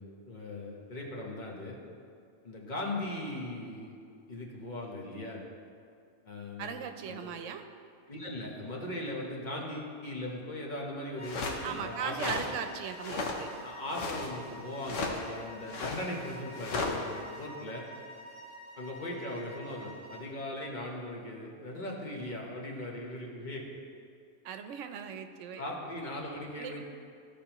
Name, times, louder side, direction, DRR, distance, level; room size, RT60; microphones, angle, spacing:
voice 1, 0.0-1.8 2.4-4.0 4.3-5.5 6.2-7.3 8.1-12.4 13.6-17.9 18.8-23.6 25.6-26.8, left 1 dB, 40° left, -2 dB, 1.1 m, -39 dB
voice 2, 6.6-7.6 11.6-13.5 24.4-25.6 26.6-26.8, right 7 dB, 85° right, 8 dB, 0.9 m, -38 dB
sound 1, 11.2-11.7 12.2-12.5 12.9-13.5 13.7-14.3 14.8-15.2 15.7-17.0, left 3 dB, 90° left, 1.2 m, -35 dB
sound 2, 11.2-20.3, equal, 10° left, 1.4 m, -49 dB
13.5 x 5.1 x 2.9 m, 2.4 s
omnidirectional pair, 1.2 m